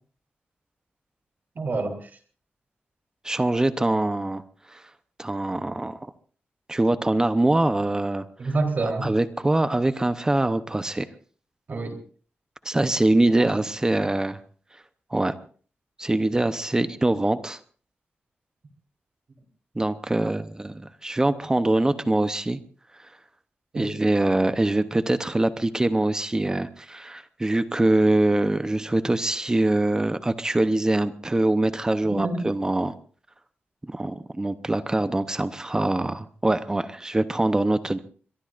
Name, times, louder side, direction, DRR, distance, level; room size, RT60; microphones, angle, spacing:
voice 1, 1.6-2.1 8.4-9.1 11.7-11.9 13.4-13.6 23.7-23.9 32.1-32.4, right 3 dB, 50° right, 3 dB, 3.7 m, -27 dB
voice 2, 3.2-4.4 4.7-4.8 5.2-6.1 6.7-8.5 9.0-11.1 12.6-14.4 15.1-15.4 16.0-17.6 19.8-22.6 23.0-23.1 23.8-32.9 33.9-38.0, right 2 dB, 15° right, 11 dB, 0.8 m, -23 dB
23.0 x 23.0 x 2.5 m, 0.43 s
wide cardioid pair, 130°, 4 cm